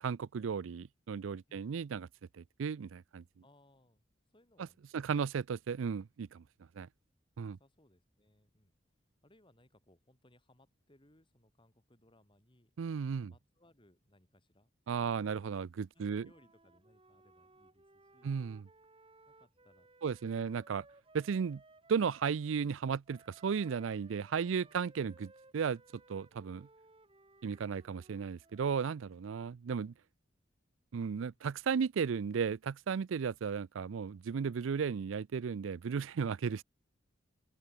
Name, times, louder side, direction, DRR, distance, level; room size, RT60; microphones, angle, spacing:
voice 1, 0.0-2.1 2.4-3.2 4.9-6.4 6.8-6.9 7.4-7.6 12.8-13.3 14.9-16.3 18.2-18.7 20.0-20.8 21.1-21.6 21.9-25.8 26.1-26.7 27.4-29.9 30.9-36.6, right 6 dB, 85° right, 0.4 m, -35 dB
voice 2, 3.4-4.0 4.3-5.4 7.5-8.7 9.2-12.7 13.2-15.3 15.9-18.3 19.3-20.6 24.4-24.8 31.3-31.5, left 1 dB, 25° left, 4.6 m, -67 dB
Wind instrument woodwind instrument, 15.9-22.3 23.0-29.1, right 2 dB, 30° right, 6.3 m, -62 dB
open air
head